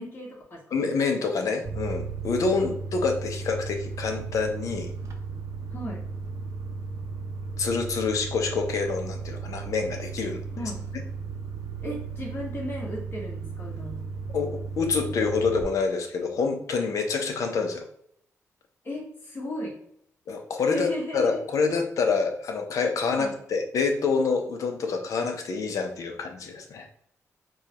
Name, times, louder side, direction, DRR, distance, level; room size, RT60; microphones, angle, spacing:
voice 1, 0.0-0.9 5.7-6.0 10.5-10.8 11.8-14.0 18.8-19.8 20.6-21.4 23.1-23.3, left 1 dB, 40° left, -4 dB, 1.5 m, -35 dB
voice 2, 0.7-4.9 7.6-10.4 10.9-11.0 14.3-17.8 20.3-26.9, left 4 dB, 70° left, 4 dB, 0.7 m, -27 dB
sound 1, 1.7-15.6, right 4 dB, 65° right, 0.6 m, -35 dB
4.8 x 2.3 x 2.9 m, 0.68 s
cardioid pair, 100°, 6 cm